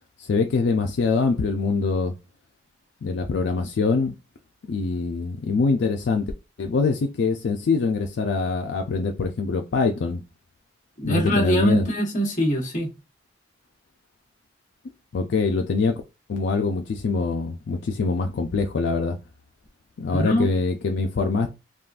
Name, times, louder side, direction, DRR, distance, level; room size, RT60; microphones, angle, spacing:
voice 1, 0.2-2.1 3.0-4.1 4.6-6.3 6.6-10.2 11.0-11.9 15.1-16.0 16.3-19.2 20.0-21.5, left 4 dB, 75° left, 0.4 m, -24 dB
voice 2, 11.0-12.9 20.1-20.5, equal, 45° left, 1.0 m, -23 dB
3.6 x 2.3 x 2.4 m
head